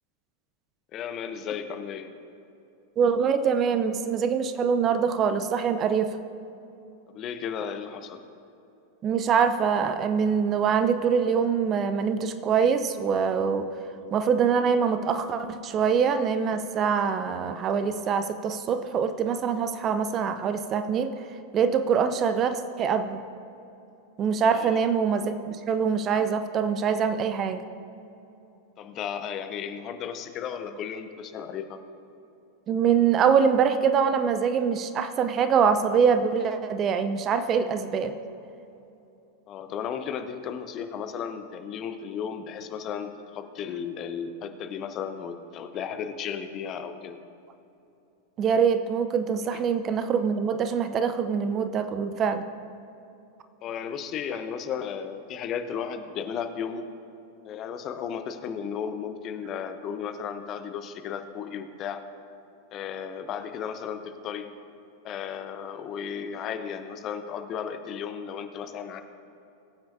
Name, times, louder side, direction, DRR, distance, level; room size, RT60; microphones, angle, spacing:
voice 1, 0.9-2.1 7.1-8.2 13.9-14.1 24.5-24.9 28.8-31.8 39.5-47.2 53.6-56.8 57.4-62.0 62.7-64.5 65.0-69.0, left 7 dB, 35° left, 8 dB, 0.8 m, -34 dB
voice 2, 3.0-6.1 9.0-13.6 14.1-21.1 21.5-23.2 24.2-27.6 32.7-38.1 48.4-52.4, right 6 dB, 30° right, 9 dB, 0.6 m, -24 dB
21.0 x 9.0 x 2.7 m, 2.9 s
figure-of-eight pair, 90°, 0 cm